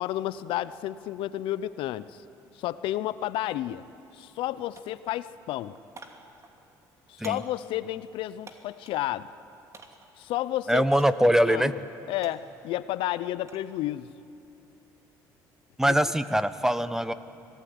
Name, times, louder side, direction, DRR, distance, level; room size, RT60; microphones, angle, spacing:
voice 1, 0.0-2.2 2.5-3.8 4.1-5.8 7.1-9.3 10.2-10.9 11.5-11.7 12.1-14.1 15.9-16.0, left 14 dB, 70° left, 15 dB, 0.7 m, -31 dB
sound 1, 3.5-3.6 4.0-4.5 4.7-9.1 9.7-10.2 11.0-11.4 11.7-13.7 14.1-14.5, right 3 dB, 35° right, 2.8 m, -51 dB
voice 2, 10.7-11.7 15.8-17.1, equal, 5° right, 13 dB, 1.1 m, -23 dB
25.5 x 17.5 x 9.8 m, 2.7 s
supercardioid pair, 75°, 9 cm